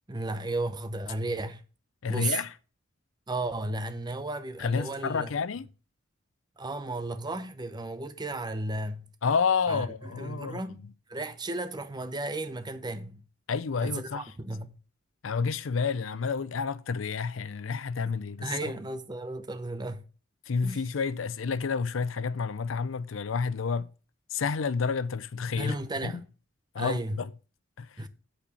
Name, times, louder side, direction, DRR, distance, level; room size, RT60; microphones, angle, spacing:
voice 1, 0.1-1.6 2.1-2.4 3.3-5.3 6.6-9.1 9.7-10.8 11.1-13.2 13.8-14.8 18.4-20.0 20.6-20.8 25.6-26.3 26.8-27.3 28.0-28.1, right 2 dB, 20° right, 0.7 m, -34 dB
voice 2, 2.0-2.5 4.6-5.7 9.2-10.8 13.5-14.2 15.2-18.7 20.5-23.9 24.3-25.8 26.0-26.2 26.7-27.3 27.8-28.0, left 5 dB, 90° left, 0.5 m, -30 dB
8.5 x 4.3 x 6.8 m
head